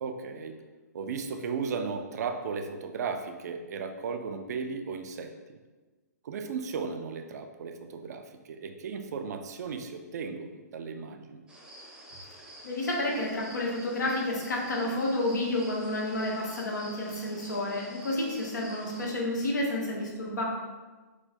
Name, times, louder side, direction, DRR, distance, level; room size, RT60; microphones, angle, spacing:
voice 1, 0.0-0.6 0.9-5.3 6.2-11.4, right 5 dB, 65° right, 6 dB, 0.4 m, -35 dB
sound 1, 11.5-19.2, right 1 dB, 10° right, 0.6 m, -48 dB
voice 2, 12.6-20.4, left 1 dB, 90° left, -2 dB, 1.3 m, -30 dB
4.5 x 2.2 x 4.1 m, 1.3 s
hypercardioid pair, 150°, 10 cm